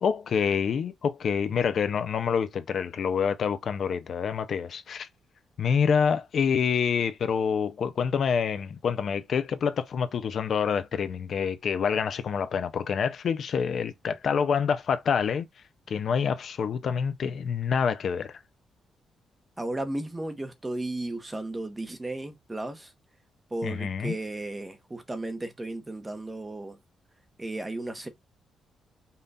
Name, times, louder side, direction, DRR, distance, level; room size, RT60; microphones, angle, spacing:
voice 1, 0.0-5.1 5.6-15.5 15.9-18.4 23.6-24.2, left 6 dB, 50° left, 0.4 m, -27 dB
voice 2, 19.6-22.9 23.5-26.8 27.4-28.1, right 2 dB, 15° right, 0.8 m, -34 dB
5.5 x 2.4 x 4.0 m
cardioid pair, 160°, 0 cm